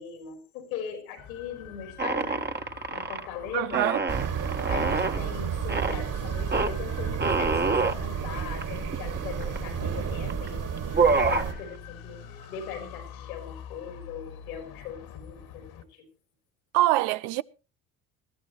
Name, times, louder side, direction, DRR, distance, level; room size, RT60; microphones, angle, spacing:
voice 1, 0.0-2.4 2.9-3.8 4.7-12.2 12.5-16.1, left 7 dB, 90° left, 4.1 m, -40 dB
sound 1, 1.2-15.8, left 8 dB, 65° left, 2.3 m, -46 dB
sound 2, 2.0-3.3 3.7-5.2 5.7-6.0 6.5-6.7 7.2-8.0 8.6-8.7 8.9-9.7 10.3-10.5 10.8-11.5, right 4 dB, 25° right, 1.6 m, -26 dB
voice 2, 3.5-4.0 16.7-17.4, right 17 dB, 75° right, 0.8 m, -24 dB
sound 3, 4.1-11.5, right 7 dB, 50° right, 3.4 m, -31 dB
21.0 x 13.5 x 3.1 m
hypercardioid pair, 60°, 40 cm